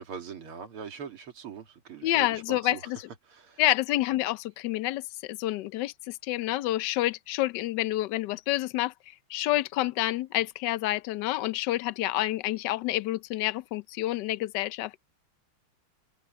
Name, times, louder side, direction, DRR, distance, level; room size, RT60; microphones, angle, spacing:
voice 1, 0.0-2.8 3.3-3.6, right 6 dB, 80° right, 3.0 m, -42 dB
voice 2, 2.0-3.0 3.6-15.0, left 16 dB, 70° left, 1.1 m, -28 dB
omnidirectional pair, 2.3 m